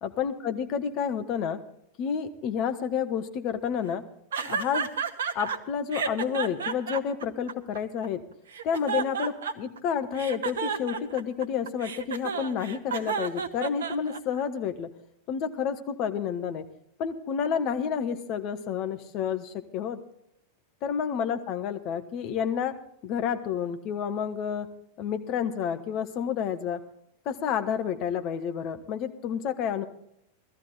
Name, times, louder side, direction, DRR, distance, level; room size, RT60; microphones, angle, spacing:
voice 1, 0.0-1.6 2.0-4.0 4.5-4.9 5.3-8.2 8.6-14.9 15.3-16.7 17.0-20.0 20.8-22.7 23.0-24.7 25.0-26.8 27.2-29.8, left 7 dB, 40° left, 8 dB, 1.1 m, -30 dB
sound 1, 4.3-5.6 5.9-8.1 8.5-9.8 10.1-14.4, right 6 dB, 65° right, 0.8 m, -31 dB
16.5 x 13.5 x 4.0 m, 0.75 s
figure-of-eight pair, 90°, 0 cm